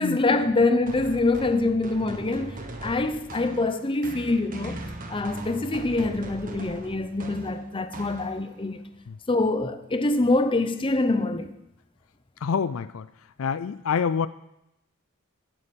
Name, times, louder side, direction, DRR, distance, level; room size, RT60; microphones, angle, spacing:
voice 1, 0.0-4.8 5.1-8.8 9.3-11.5, left 2 dB, 25° left, 0.7 m, -25 dB
sound 1, 0.9-8.7, right 1 dB, 40° right, 1.3 m, -40 dB
voice 2, 12.4-13.1 13.4-14.3, left 6 dB, 70° left, 0.4 m, -26 dB
18.0 x 7.1 x 5.3 m
head